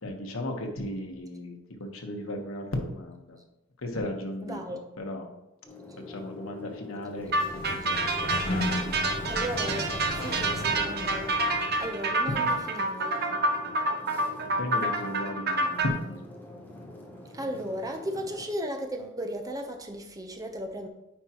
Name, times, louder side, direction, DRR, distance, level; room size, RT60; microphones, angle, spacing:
voice 1, 0.0-3.4 3.8-5.2 6.1-8.0 12.3-12.6 14.6-16.2, left 1 dB, 85° left, 3 dB, 1.1 m, -35 dB
voice 2, 4.4-4.8 9.3-11.4 11.8-13.4 17.3-20.9, equal, 20° right, 4 dB, 0.7 m, -35 dB
sound 1, 5.6-18.5, left 3 dB, 10° left, 0.9 m, -45 dB
Sliding door, 7.1-12.3, left 2 dB, 45° left, 0.7 m, -35 dB
sound 2, 7.3-15.9, right 2 dB, 55° right, 0.7 m, -28 dB
8.9 x 4.7 x 2.9 m, 0.90 s
head